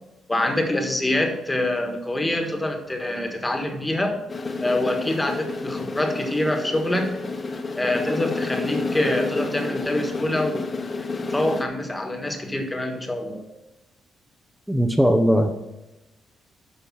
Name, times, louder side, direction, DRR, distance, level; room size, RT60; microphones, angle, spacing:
voice 1, 0.3-4.2 4.6-7.2 7.7-10.7 11.3-13.5, left 1 dB, 15° left, 4 dB, 1.5 m, -25 dB
sound 1, 4.3-11.6, left 3 dB, 35° left, 1.0 m, -30 dB
voice 2, 14.7-15.5, equal, 5° right, 5 dB, 0.7 m, -19 dB
8.5 x 5.2 x 5.9 m, 0.99 s
cardioid pair, 90°, 0 cm